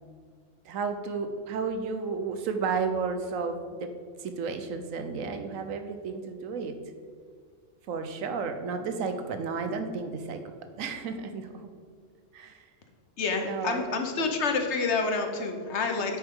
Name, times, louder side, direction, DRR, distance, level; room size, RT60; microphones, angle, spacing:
voice 1, 0.6-3.9 4.2-6.8 7.9-10.4 10.8-11.7 12.3-12.6 13.4-14.4, right 5 dB, 90° right, 7 dB, 1.2 m, -32 dB
voice 2, 13.2-16.2, left 4 dB, 65° left, 5 dB, 1.2 m, -28 dB
9.4 x 6.2 x 3.7 m, 2.1 s
omnidirectional pair, 1.3 m